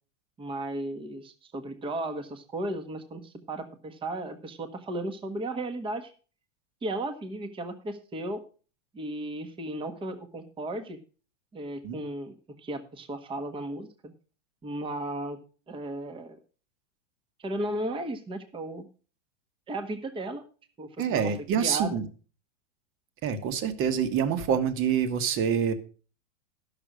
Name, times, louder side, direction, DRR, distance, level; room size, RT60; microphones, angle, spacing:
voice 1, 0.4-6.1 6.8-8.4 8.9-11.0 11.5-14.1 14.6-15.4 15.7-16.4 17.4-18.9 19.7-20.4 20.8-22.0, right 1 dB, 15° right, 8 dB, 1.1 m, -35 dB
voice 2, 21.0-22.1 23.2-25.7, right 7 dB, 35° right, 11 dB, 1.3 m, -26 dB
11.0 x 6.8 x 6.2 m, 0.38 s
hypercardioid pair, 135°, 37 cm